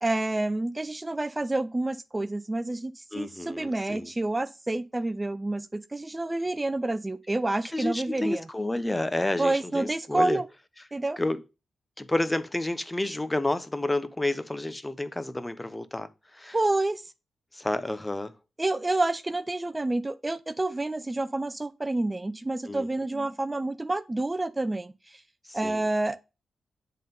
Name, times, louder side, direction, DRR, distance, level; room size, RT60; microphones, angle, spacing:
voice 1, 0.0-8.5 9.4-10.5 10.9-11.2 16.5-17.1 18.6-25.2 25.5-26.3, right 2 dB, 25° right, 0.5 m, -28 dB
voice 2, 3.1-4.1 7.7-10.4 11.2-11.4 12.0-16.6 17.5-18.3 22.6-22.9 25.5-25.8, left 1 dB, 20° left, 0.8 m, -30 dB
7.5 x 3.8 x 5.4 m
supercardioid pair, 50°, 0 cm